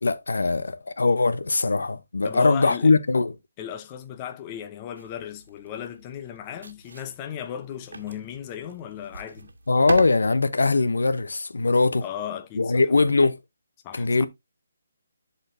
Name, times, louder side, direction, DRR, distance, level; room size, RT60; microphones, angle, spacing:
voice 1, 0.0-3.3 9.7-12.0 12.6-13.4 13.9-14.3, left 3 dB, 85° left, 0.8 m, -21 dB
voice 2, 2.2-2.9 3.6-9.5 12.0-13.1 13.8-14.3, left 9 dB, 20° left, 0.7 m, -36 dB
sound 1, 5.0-11.3, right 3 dB, 85° right, 1.4 m, -39 dB
11.5 x 4.3 x 2.6 m
hypercardioid pair, 160°, 0 cm